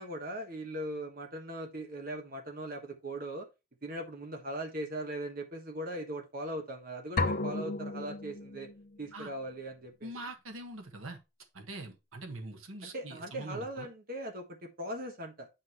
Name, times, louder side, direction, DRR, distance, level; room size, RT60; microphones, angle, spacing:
voice 1, 0.0-3.5 3.8-8.7 9.0-10.1 12.8-15.5, right 1 dB, 45° right, 1.3 m, -39 dB
sound 1, 7.2-9.0, left 2 dB, 45° left, 0.6 m, -33 dB
voice 2, 10.0-11.2 11.5-13.9, right 2 dB, 80° right, 1.5 m, -43 dB
8.9 x 5.6 x 3.0 m
head